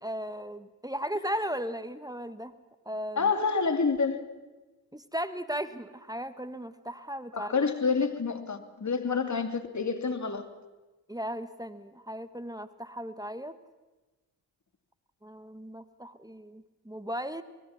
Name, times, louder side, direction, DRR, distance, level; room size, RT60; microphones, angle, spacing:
voice 1, 0.0-2.5 2.8-3.2 4.9-7.5 11.1-13.6 15.2-17.4, equal, 10° right, 12 dB, 1.6 m, -36 dB
voice 2, 3.2-4.2 7.3-10.5, left 5 dB, 35° left, 7 dB, 2.7 m, -28 dB
26.0 x 20.5 x 5.9 m, 1.2 s
hypercardioid pair, 40°, 48 cm